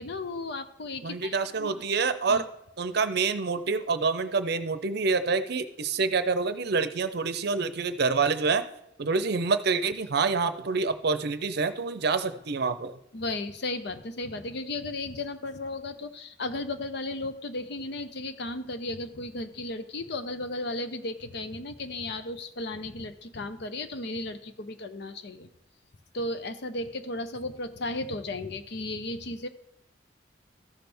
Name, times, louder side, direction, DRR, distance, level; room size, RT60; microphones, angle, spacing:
voice 1, 0.0-1.8 2.3-2.5 13.1-25.5 26.1-29.5, left 2 dB, 65° left, 10 dB, 0.7 m, -35 dB
voice 2, 1.0-2.4 2.8-8.6 9.0-12.9, right 4 dB, 60° right, 11 dB, 0.6 m, -27 dB
14.0 x 6.1 x 3.4 m, 0.79 s
head